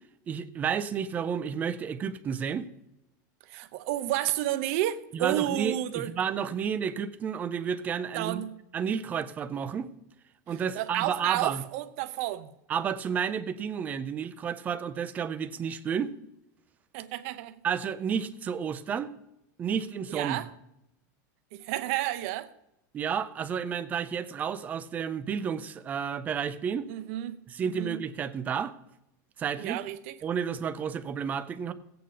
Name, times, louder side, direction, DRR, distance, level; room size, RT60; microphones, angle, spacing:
voice 1, 0.3-2.7 5.1-8.4 8.7-9.9 10.5-11.6 12.7-16.1 17.6-19.1 19.6-20.4 22.9-26.9 27.5-28.7 29.4-29.8 30.2-31.7, right 7 dB, 15° right, 0.5 m, -31 dB
voice 2, 3.4-6.1 8.1-8.5 10.5-12.5 16.9-17.6 20.1-20.5 21.5-22.5 26.9-28.0 29.6-30.2, right 14 dB, 45° right, 0.7 m, -31 dB
16.0 x 8.5 x 3.9 m
supercardioid pair, 175°, 10 cm